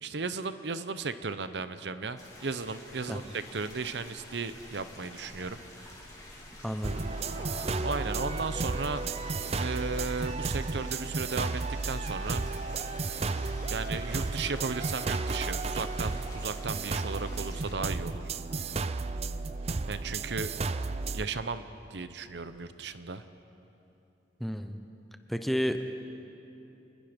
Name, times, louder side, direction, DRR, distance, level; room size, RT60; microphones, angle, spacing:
voice 1, 0.0-6.0 7.8-9.0 9.6-12.4 13.7-18.2 19.9-20.5 21.1-21.6 21.9-23.2, right 4 dB, 65° right, 11 dB, 0.8 m, -35 dB
sound 1, 2.2-17.7, left 2 dB, 20° left, 3.6 m, -50 dB
Motorcycle, 4.4-11.9, right 1 dB, 85° right, 3.6 m, -49 dB
voice 2, 6.6-7.0 24.4-24.8 25.3-25.8, equal, ahead, 7 dB, 0.9 m, -31 dB
sound 2, 6.8-21.3, right 3 dB, 35° right, 0.5 m, -33 dB
27.5 x 20.5 x 5.2 m, 2.8 s
head